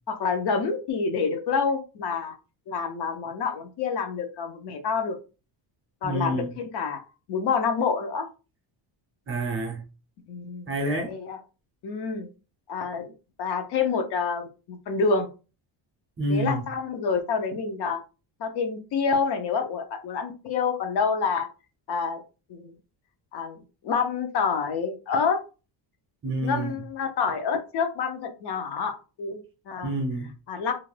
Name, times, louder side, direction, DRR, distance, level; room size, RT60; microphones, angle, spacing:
voice 1, 0.1-2.3 2.7-5.2 6.0-7.0 7.3-8.2 10.3-10.7 11.1-11.4 11.8-12.3 12.7-13.1 13.4-15.3 16.3-18.0 18.4-21.5 21.9-22.2 22.5-22.6 23.3-25.4 26.4-29.9 30.5-30.7, left 5 dB, 55° left, 0.6 m, -27 dB
voice 2, 6.0-6.5 9.3-9.8 10.7-11.1 16.2-16.6 26.2-26.7 29.8-30.3, right 1 dB, 30° right, 0.5 m, -28 dB
2.5 x 2.1 x 3.1 m
cardioid pair, 145°, 47 cm